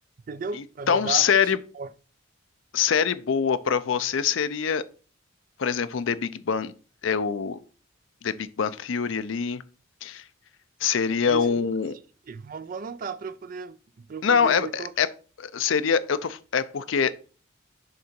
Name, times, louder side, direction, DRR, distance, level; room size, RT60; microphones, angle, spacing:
voice 1, 0.3-1.9 11.2-11.7 12.3-14.9, right 5 dB, 40° right, 0.3 m, -35 dB
voice 2, 0.9-1.6 2.7-4.8 5.6-6.7 7.0-7.6 8.2-9.6 10.0-10.2 10.8-12.0 14.2-15.1 15.4-17.1, left 6 dB, 70° left, 0.5 m, -24 dB
6.6 x 3.8 x 4.4 m
head